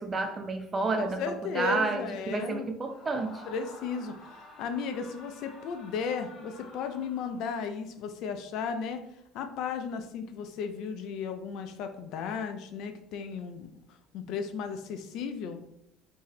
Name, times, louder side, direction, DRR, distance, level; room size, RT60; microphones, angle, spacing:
voice 1, 0.0-3.4, right 3 dB, 30° right, 0.4 m, -31 dB
voice 2, 0.9-2.7 3.5-4.1 4.6-9.0 9.3-13.7 14.1-15.6, left 6 dB, 65° left, 0.4 m, -35 dB
Screaming, 2.8-7.7, left 2 dB, 35° left, 0.8 m, -50 dB
2.7 x 2.1 x 3.9 m
supercardioid pair, 90°, 0 cm